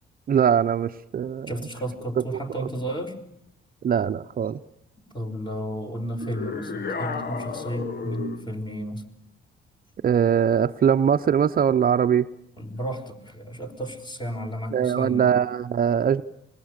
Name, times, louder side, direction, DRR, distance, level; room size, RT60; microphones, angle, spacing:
voice 1, 0.3-1.5 2.5-2.7 3.8-4.6 10.0-12.3 14.7-16.2, right 8 dB, 45° right, 9 dB, 0.8 m, -21 dB
voice 2, 1.5-3.2 5.1-9.0 12.6-15.4, right 1 dB, 20° left, 4 dB, 5.4 m, -33 dB
sound 1, 6.2-8.5, left 5 dB, 55° left, 1.7 m, -33 dB
25.0 x 21.5 x 6.7 m, 0.76 s
cardioid pair, 90°, 20 cm